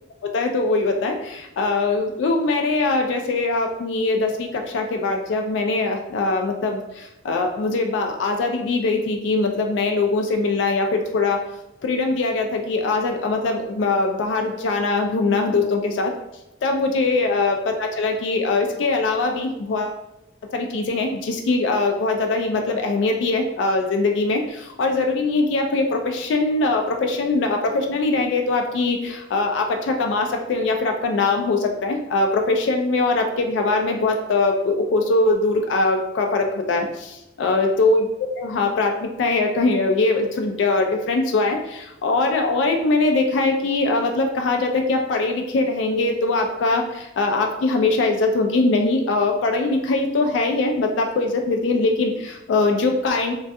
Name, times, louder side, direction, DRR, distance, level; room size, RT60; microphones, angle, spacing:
voice 1, 0.3-11.4 11.8-16.1 16.6-20.0 20.5-38.1 38.4-53.3, left 3 dB, 75° left, 3 dB, 0.3 m, -22 dB
2.6 x 2.3 x 2.2 m, 0.87 s
head